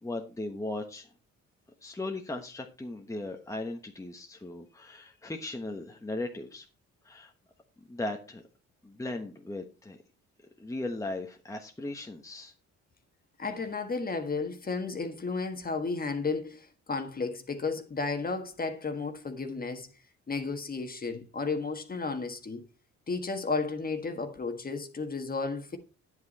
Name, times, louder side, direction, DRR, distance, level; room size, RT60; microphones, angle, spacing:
voice 1, 0.0-1.1 1.8-6.7 7.0-7.3 7.9-8.4 8.8-10.0 10.6-12.5, left 2 dB, 10° left, 1.1 m, -37 dB
voice 2, 13.4-19.9 20.3-22.6 23.1-25.8, left 4 dB, 30° left, 1.5 m, -33 dB
9.5 x 8.1 x 4.2 m
cardioid pair, 90°, 30 cm